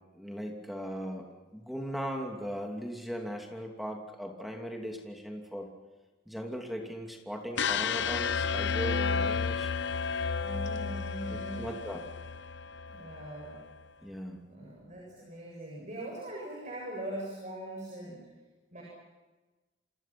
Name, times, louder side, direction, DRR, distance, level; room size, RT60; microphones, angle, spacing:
voice 1, 0.1-5.7 6.3-9.7 11.6-12.0 14.0-14.4, equal, ahead, 1 dB, 2.9 m, -38 dB
sound 1, 7.6-13.6, left 5 dB, 60° left, 0.8 m, -32 dB
voice 2, 10.4-11.7 12.9-13.6 14.4-18.2 18.7-18.8, right 1 dB, 35° right, -3 dB, 7.6 m, -41 dB
29.0 x 26.0 x 6.1 m, 1.2 s
head